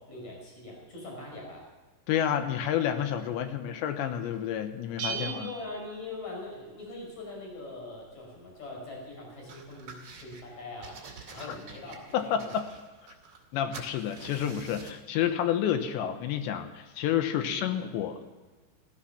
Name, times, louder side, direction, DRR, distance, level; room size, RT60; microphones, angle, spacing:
voice 1, 0.0-1.6 3.4-3.6 5.1-11.0 11.3-12.7 17.4-18.0, left 2 dB, 35° left, -1 dB, 6.6 m, -42 dB
voice 2, 2.1-5.5 12.1-12.7 13.5-18.2, left 10 dB, 75° left, 8 dB, 3.1 m, -29 dB
Bell, 5.0-6.8, right 6 dB, 60° right, 2.3 m, -38 dB
Lighting a match, 9.5-10.4 10.8-13.5 13.7-15.0, right 4 dB, 40° right, 2.9 m, -47 dB
16.5 x 15.0 x 5.8 m, 1.3 s
omnidirectional pair, 5.5 m